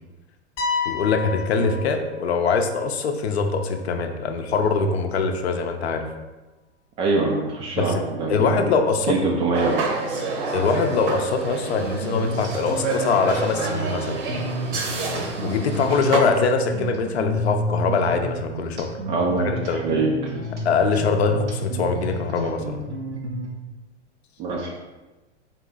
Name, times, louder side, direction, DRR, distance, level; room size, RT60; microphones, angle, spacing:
sound 1, 0.6-2.5, left 5 dB, 30° left, 0.8 m, -29 dB
voice 1, 0.9-6.0 7.7-8.0 8.3-9.2 10.5-14.2 15.4-18.9 19.4-19.8 20.6-22.8, left 4 dB, 65° left, 5 dB, 0.6 m, -23 dB
voice 2, 7.0-8.6 9.1-9.9 19.1-20.3 24.4-24.7, right 3 dB, 20° right, 0 dB, 0.3 m, -24 dB
sound 2, 9.5-16.2, right 3 dB, 50° right, 0.9 m, -28 dB
sound 3, 11.8-23.5, equal, 85° right, 0.9 m, -31 dB
4.4 x 3.0 x 3.7 m, 1.2 s
figure-of-eight pair, 95°, 35 cm